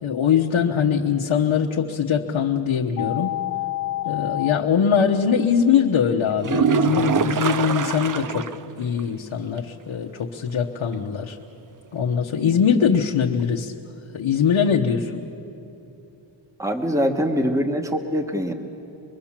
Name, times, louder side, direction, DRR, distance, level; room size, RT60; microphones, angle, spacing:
voice 1, 0.0-3.4 4.0-8.5 8.8-11.4 11.9-13.7 14.1-15.2, left 7 dB, 90° left, 0 dB, 1.2 m, -22 dB
sound 1, 3.0-4.6, left 16 dB, 45° left, 0.5 m, -27 dB
sound 2, 6.4-8.7 9.0-9.1 9.5-9.6 13.4-13.5, right 6 dB, 45° right, 0.6 m, -23 dB
voice 2, 16.6-18.5, equal, 5° right, 5 dB, 1.1 m, -23 dB
24.0 x 23.0 x 7.4 m, 2.9 s
wide cardioid pair, 175°, 46 cm